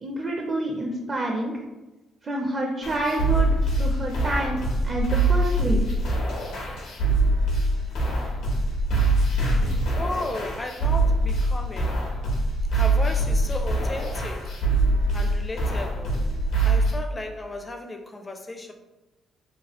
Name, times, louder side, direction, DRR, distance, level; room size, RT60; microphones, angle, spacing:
voice 1, 0.0-1.6 2.2-3.5 3.8-5.9, right 1 dB, 40° right, 0 dB, 0.4 m, -28 dB
sound 1, 2.8-16.9, right 2 dB, 85° left, 0.9 m, -24 dB
voice 2, 10.0-12.1 12.7-14.6 15.1-16.2 16.6-18.7, left 2 dB, 25° left, 4 dB, 0.4 m, -34 dB
3.1 x 2.3 x 2.9 m, 1.1 s
cardioid pair, 90°, 0 cm